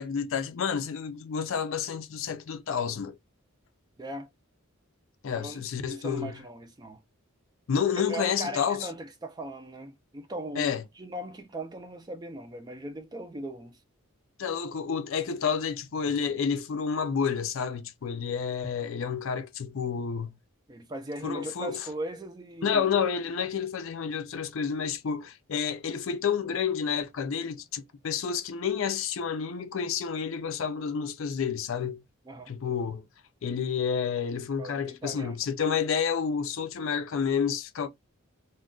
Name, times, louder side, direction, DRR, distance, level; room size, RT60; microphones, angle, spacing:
voice 1, 0.0-3.1 5.2-6.3 7.7-8.9 10.6-10.8 14.4-20.3 21.2-21.8 22.6-32.0 32.5-33.0 33.4-37.9, left 6 dB, 65° left, 0.4 m, -30 dB
voice 2, 4.0-4.3 5.3-7.0 7.9-13.8 20.7-22.8 32.3-32.5 34.6-35.4, right 1 dB, 20° right, 0.3 m, -39 dB
2.3 x 2.2 x 3.6 m
head